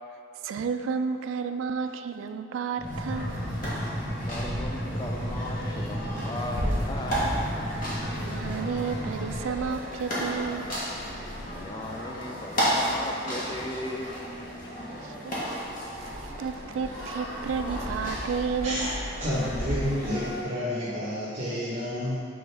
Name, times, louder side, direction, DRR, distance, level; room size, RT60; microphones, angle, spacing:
voice 1, 0.4-3.4 8.2-10.7 14.9-15.3 15.9-18.9, right 5 dB, 85° right, 8 dB, 0.3 m, -32 dB
sound 1, 2.8-20.4, equal, 45° left, 1.4 m, -33 dB
sound 2, 2.8-9.4, equal, 10° right, 1.4 m, -34 dB
voice 2, 4.3-7.4 11.4-14.5, left 1 dB, 20° left, 2 dB, 0.4 m, -37 dB
voice 3, 19.2-22.3, equal, 40° right, -12 dB, 1.1 m, -30 dB
6.4 x 4.5 x 3.3 m, 2.4 s
head